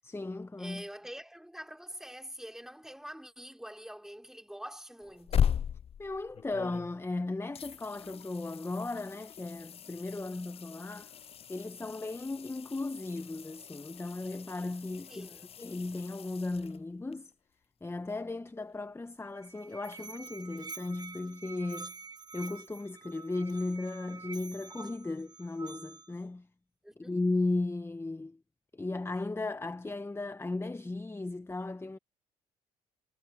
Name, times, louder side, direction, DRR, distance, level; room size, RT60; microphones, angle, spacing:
voice 1, 0.0-0.8 6.0-11.2 11.5-15.3 15.6-17.3 17.8-21.9 22.3-26.5 27.0-28.4 28.7-32.0, left 2 dB, 15° left, 1.2 m, -36 dB
voice 2, 0.6-5.6 15.1-15.5 26.8-27.2, equal, 5° right, 4.8 m, -45 dB
sound 1, 5.0-7.2 7.5-17.1 19.9-20.0, left 8 dB, 40° left, 0.5 m, -38 dB
Musical instrument, 19.2-26.2, right 4 dB, 25° right, 1.0 m, -47 dB
hypercardioid pair, 55°, 16 cm